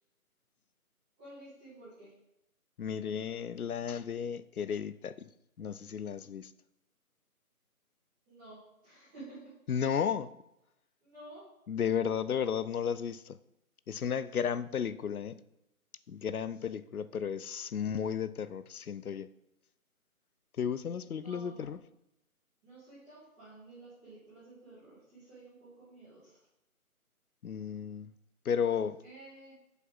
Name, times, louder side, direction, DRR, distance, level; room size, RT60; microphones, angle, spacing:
voice 1, 1.2-2.1 8.3-9.5 11.0-11.4 21.2-21.5 22.6-26.4 29.0-29.6, right 2 dB, 5° right, 2.2 m, -52 dB
voice 2, 2.8-5.1 5.6-6.5 9.7-10.3 11.7-13.4 13.9-15.4 16.1-19.3 20.6-21.8 27.4-28.1 28.4-29.0, left 7 dB, 75° left, 0.7 m, -33 dB
8.5 x 7.1 x 3.9 m
figure-of-eight pair, 175°, 44 cm